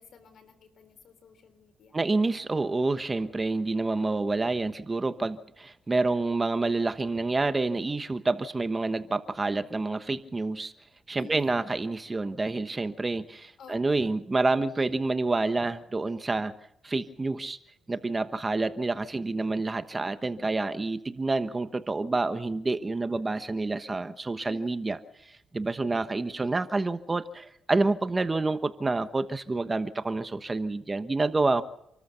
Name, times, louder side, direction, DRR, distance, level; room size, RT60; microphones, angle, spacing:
voice 1, 0.0-2.0 11.2-11.6 13.6-14.0 24.4-24.9, left 5 dB, 60° left, 10 dB, 3.9 m, -51 dB
voice 2, 1.9-10.7 11.1-16.5 16.8-17.6 17.9-25.0 25.3-31.6, right 3 dB, 25° right, 11 dB, 1.2 m, -28 dB
27.0 x 14.0 x 6.9 m, 0.79 s
cardioid pair, 90°, 0 cm